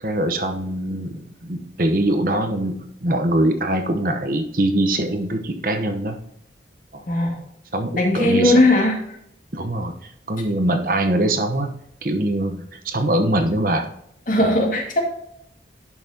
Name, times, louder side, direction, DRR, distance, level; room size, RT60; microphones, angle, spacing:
voice 1, 0.0-6.2 6.9-7.0 7.7-8.5 9.5-9.9 10.3-11.7 12.0-13.9, right 1 dB, 50° right, 6 dB, 1.0 m, -22 dB
voice 2, 7.1-7.4 8.0-9.0 14.3-15.0, left 1 dB, 45° left, 1 dB, 2.0 m, -18 dB
11.0 x 5.8 x 2.8 m, 0.72 s
head